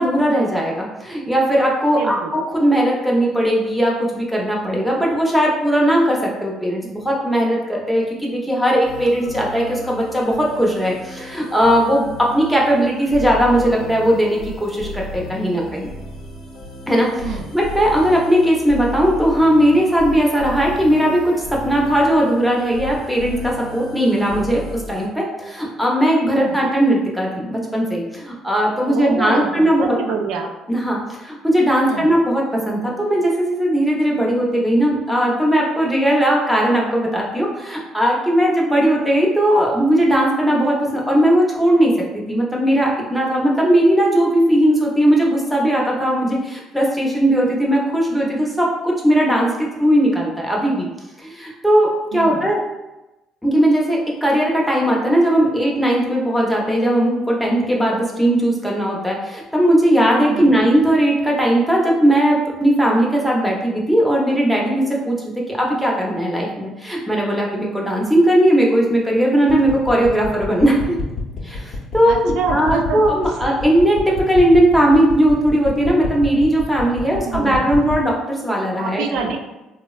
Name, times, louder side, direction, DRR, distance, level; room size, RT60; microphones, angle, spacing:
voice 1, 0.0-15.9 16.9-30.0 30.7-50.9 51.2-52.6 53.4-70.8 71.4-79.3, right 1 dB, ahead, -3 dB, 0.6 m, -18 dB
voice 2, 1.9-2.4 17.2-17.5 26.3-26.6 28.9-30.5 31.8-32.1 52.1-52.5 60.3-60.5 72.0-73.0 77.0-77.8 78.8-79.4, right 6 dB, 85° right, 3 dB, 0.3 m, -27 dB
sound 1, 8.8-25.1, left 3 dB, 85° left, 0.7 m, -34 dB
sound 2, 69.5-78.0, left 4 dB, 50° left, 0.7 m, -29 dB
3.3 x 2.0 x 2.3 m, 1.0 s
cardioid pair, 105°, 0 cm